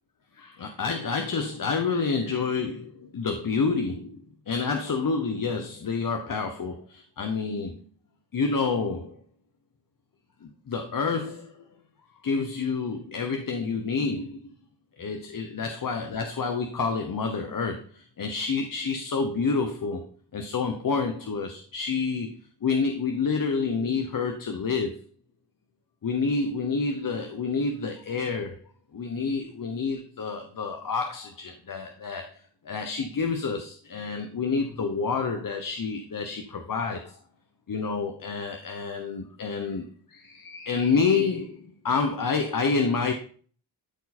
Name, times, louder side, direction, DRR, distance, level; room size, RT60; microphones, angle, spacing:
voice 1, 0.3-4.2 4.5-7.8 8.3-9.2 10.4-11.7 12.2-14.4 15.0-20.0 20.3-22.3 22.6-25.0 26.0-28.6 28.9-32.4 32.6-37.2 37.7-43.1, left 4 dB, 45° left, 0.9 m, -28 dB
12.5 x 4.6 x 4.2 m
wide cardioid pair, 175°, 44 cm